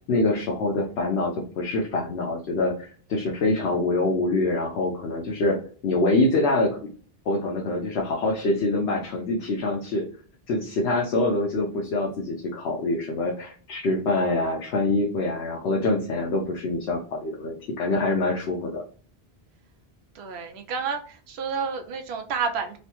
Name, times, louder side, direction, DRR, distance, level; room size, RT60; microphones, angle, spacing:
voice 1, 0.1-5.6 5.8-6.9 7.3-10.0 10.5-18.8, left 2 dB, 90° left, -1 dB, 0.9 m, -25 dB
voice 2, 20.1-22.8, right 5 dB, 85° right, 6 dB, 0.8 m, -30 dB
3.1 x 2.1 x 2.8 m, 0.41 s
omnidirectional pair, 1.1 m